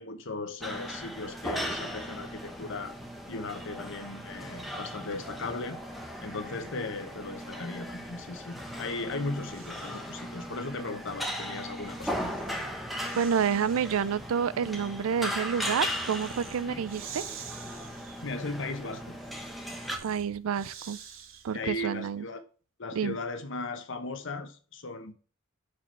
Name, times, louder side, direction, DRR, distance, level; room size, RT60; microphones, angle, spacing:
voice 1, 0.0-3.0 3.3-5.8 6.2-12.5 16.6-16.8 18.2-19.1 21.5-22.4 22.8-25.1, left 3 dB, 60° left, 1.0 m, -37 dB
sound 1, 0.6-20.0, equal, ahead, 0.9 m, -38 dB
Breathing, 8.3-10.2 11.5-21.7, right 7 dB, 70° right, 1.0 m, -49 dB
voice 2, 13.2-17.2 20.0-21.0 21.4-22.3 22.9-23.1, right 7 dB, 85° right, 0.4 m, -29 dB
5.9 x 4.8 x 4.4 m
head